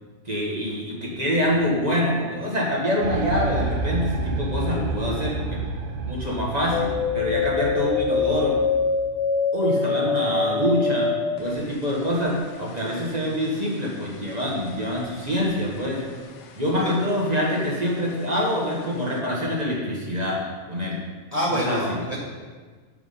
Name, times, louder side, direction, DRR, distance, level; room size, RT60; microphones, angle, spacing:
voice 1, 0.2-5.6 6.0-6.9 7.1-8.5 9.5-11.1 11.4-16.0 16.5-20.4 20.7-21.0 21.6-22.0, equal, 35° right, -4 dB, 1.4 m, -25 dB
sound 1, 3.0-8.8, right 3 dB, 80° right, 1.0 m, -30 dB
sound 2, 6.7-16.1 16.4-17.2 17.6-18.5 18.9-19.0, left 5 dB, 85° left, 1.0 m, -26 dB
voice 2, 21.3-22.2, equal, 35° left, -4 dB, 1.3 m, -26 dB
7.1 x 4.9 x 5.5 m, 1.5 s
omnidirectional pair, 1.2 m